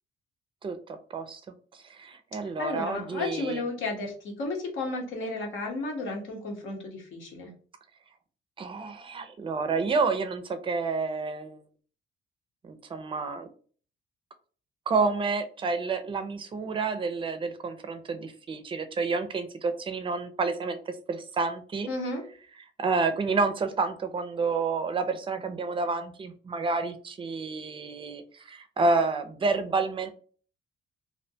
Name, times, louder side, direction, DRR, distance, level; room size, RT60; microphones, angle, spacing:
voice 1, 0.6-1.4 1.7-3.6 8.6-11.6 12.6-13.5 14.9-21.9 22.8-30.1, right 4 dB, 25° right, 9 dB, 0.4 m, -29 dB
voice 2, 2.6-7.5 21.9-22.2, left 2 dB, 80° left, 1 dB, 0.9 m, -33 dB
2.5 x 2.1 x 2.6 m, 0.43 s
cardioid pair, 90°, 20 cm